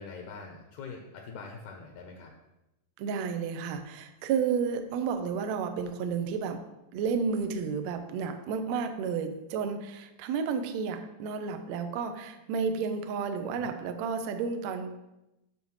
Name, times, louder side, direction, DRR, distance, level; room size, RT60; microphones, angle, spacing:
voice 1, 0.0-2.3 13.6-13.7, left 4 dB, 75° left, 2 dB, 1.9 m, -43 dB
voice 2, 3.0-6.6 6.9-14.9, right 6 dB, 85° right, 7 dB, 1.5 m, -31 dB
9.1 x 6.5 x 3.1 m, 0.93 s
omnidirectional pair, 4.0 m